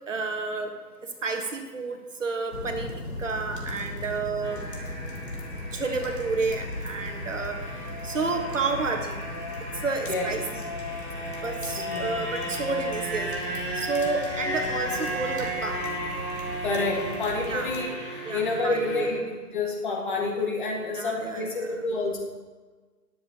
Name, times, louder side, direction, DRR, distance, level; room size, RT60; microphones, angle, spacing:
voice 1, 0.1-0.7 1.2-2.9 3.2-4.6 5.7-9.2 9.8-10.6 11.4-13.3 13.7-15.8 17.5-17.7 18.2-19.2 20.9-21.7, right 3 dB, 50° right, 4 dB, 1.3 m, -30 dB
sound 1, 2.5-17.8, left 1 dB, 85° left, 3.2 m, -38 dB
sound 2, 4.4-19.1, equal, ahead, 1.9 m, -35 dB
voice 2, 10.1-10.4 11.8-12.1 16.6-17.9 18.3-22.2, left 3 dB, 30° left, -2 dB, 1.6 m, -28 dB
21.5 x 7.3 x 2.9 m, 1.4 s
figure-of-eight pair, 150°, 48 cm